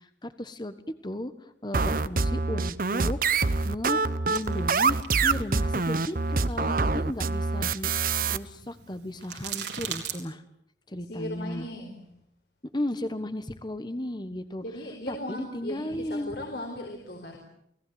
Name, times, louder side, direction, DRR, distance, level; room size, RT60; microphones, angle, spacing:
voice 1, 0.0-3.2 3.6-4.0 4.3-10.4 10.9-11.7 12.7-14.6 15.1-16.3, left 1 dB, 25° left, 11 dB, 1.3 m, -35 dB
sound 1, 1.7-8.4, right 4 dB, 50° right, 0.9 m, -25 dB
sound 2, 4.3-10.2, right 8 dB, 75° right, 4.1 m, -42 dB
voice 2, 11.0-12.0 14.6-17.4, left 1 dB, 65° left, 2 dB, 4.7 m, -37 dB
29.0 x 18.5 x 9.4 m, 0.75 s
head